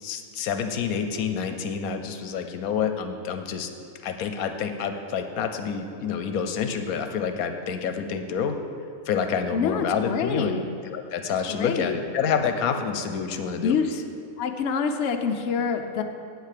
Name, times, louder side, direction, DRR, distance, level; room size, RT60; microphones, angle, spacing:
voice 1, 0.0-3.7 4.0-8.6 9.1-10.6 10.9-13.8, left 6 dB, 85° left, 7 dB, 1.2 m, -28 dB
voice 2, 9.5-10.7 11.3-12.0 13.6-14.0 14.4-16.0, left 6 dB, 60° left, 5 dB, 0.9 m, -26 dB
8.2 x 8.2 x 6.6 m, 2.4 s
omnidirectional pair, 1.5 m